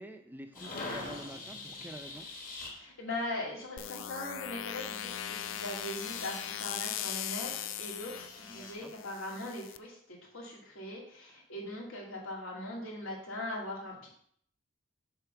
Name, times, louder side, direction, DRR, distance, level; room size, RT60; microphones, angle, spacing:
voice 1, 0.0-2.3 8.5-8.9, right 1 dB, 10° right, 6 dB, 0.4 m, -47 dB
sound 1, 0.5-2.7 4.9-8.7, left 3 dB, 45° left, 1.4 m, -44 dB
voice 2, 2.6-14.1, left 1 dB, 85° left, -3 dB, 2.4 m, -40 dB
sound 2, 3.8-9.8, left 11 dB, 65° left, 0.3 m, -39 dB
7.0 x 3.8 x 5.7 m, 0.65 s
head